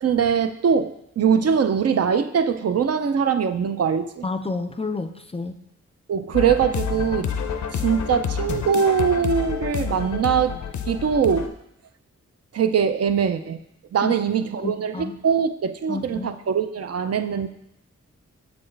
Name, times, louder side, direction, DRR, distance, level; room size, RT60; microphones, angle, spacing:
voice 1, 0.0-4.2 6.1-7.3 7.8-10.5 10.9-11.5 12.5-13.6 13.9-17.5, right 7 dB, 60° right, 9 dB, 0.4 m, -22 dB
voice 2, 4.2-5.5 14.0-14.1 14.6-15.2 15.9-16.3, left 3 dB, 20° left, 8 dB, 0.3 m, -30 dB
sound 1, 6.3-11.5, left 7 dB, 75° left, 0.5 m, -28 dB
6.8 x 4.3 x 3.2 m, 0.79 s
cardioid pair, 50°, 29 cm